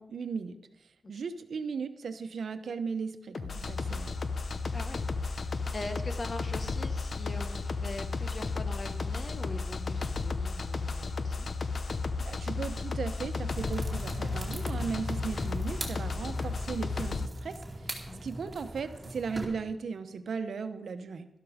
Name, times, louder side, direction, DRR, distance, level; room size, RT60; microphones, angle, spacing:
voice 1, 0.0-4.1 12.2-21.3, right 5 dB, 80° right, 10 dB, 0.9 m, -37 dB
sound 1, 3.3-17.3, left 4 dB, 60° left, 0.8 m, -33 dB
voice 2, 4.7-11.5 15.2-15.3 18.0-18.2, left 2 dB, 40° left, 8 dB, 1.3 m, -42 dB
sound 2, 13.5-19.4, right 1 dB, 20° right, 2.5 m, -41 dB
12.0 x 12.0 x 5.0 m, 0.86 s
wide cardioid pair, 95°, 0 cm